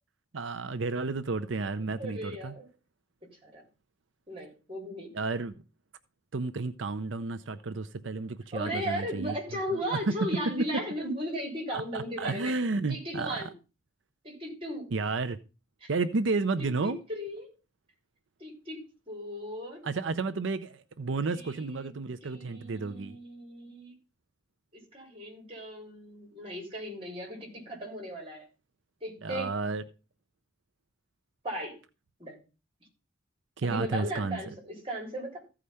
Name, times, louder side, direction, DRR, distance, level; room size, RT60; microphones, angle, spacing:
voice 1, 0.3-2.5 5.1-5.5 6.3-9.4 9.7-9.8 10.1-10.2 10.6-10.8 11.7-13.4 14.9-15.4 15.9-17.0 19.8-23.2 29.2-29.8 33.6-34.4, right 3 dB, 75° right, 0.6 m, -32 dB
voice 2, 1.9-2.7 3.4-3.6 4.3-5.1 8.5-12.5 12.9-13.5 14.2-14.9 15.8-15.9 16.6-17.5 18.4-19.8 21.2-21.9 22.2-24.0 24.7-28.5 29.0-29.5 31.4-31.8 32.2-32.4 33.6-35.4, equal, 30° right, 3.8 m, -37 dB
15.0 x 4.9 x 5.6 m
head